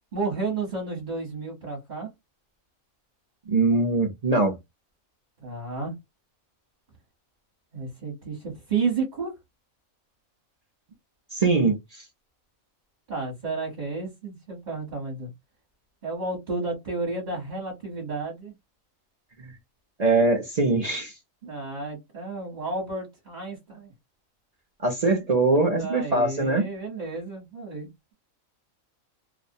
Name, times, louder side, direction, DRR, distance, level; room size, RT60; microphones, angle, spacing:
voice 1, 0.1-2.1 5.4-5.9 7.7-9.3 13.1-15.3 16.0-18.5 21.4-23.9 25.8-28.1, right 4 dB, 35° right, 0.9 m, -32 dB
voice 2, 3.5-4.5 11.3-12.0 19.4-19.5 20.0-21.1 24.8-26.6, right 3 dB, 50° right, 0.4 m, -22 dB
2.4 x 2.0 x 2.6 m
omnidirectional pair, 1.4 m